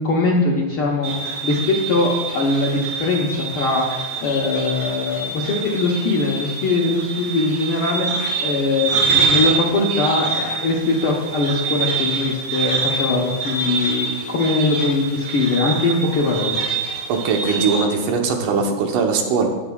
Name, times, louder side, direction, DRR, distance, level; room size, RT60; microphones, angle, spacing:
voice 1, 0.0-16.6, left 3 dB, 65° left, -2 dB, 1.3 m, -21 dB
sound 1, 1.0-17.8, right 5 dB, 70° right, 4.2 m, -25 dB
voice 2, 17.1-19.5, right 5 dB, 90° right, 3 dB, 2.5 m, -20 dB
19.0 x 7.0 x 2.3 m, 1.3 s
omnidirectional pair, 3.5 m